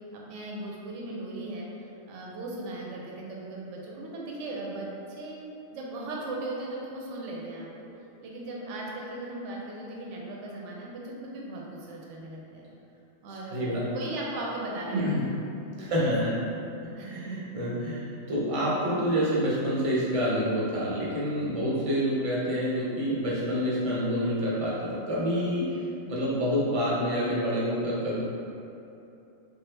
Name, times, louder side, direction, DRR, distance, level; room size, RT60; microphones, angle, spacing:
voice 1, 0.1-1.7 2.1-5.4 5.7-7.9 8.2-12.7 13.2-15.4 15.6-16.4 17.0-17.4, right 2 dB, 70° right, -3 dB, 0.9 m, -38 dB
voice 2, 13.5-13.8 14.9-15.2 15.8-16.3 16.8-25.7 26.1-28.2, equal, 35° right, -7 dB, 0.5 m, -27 dB
3.2 x 2.2 x 3.2 m, 2.8 s
omnidirectional pair, 1.4 m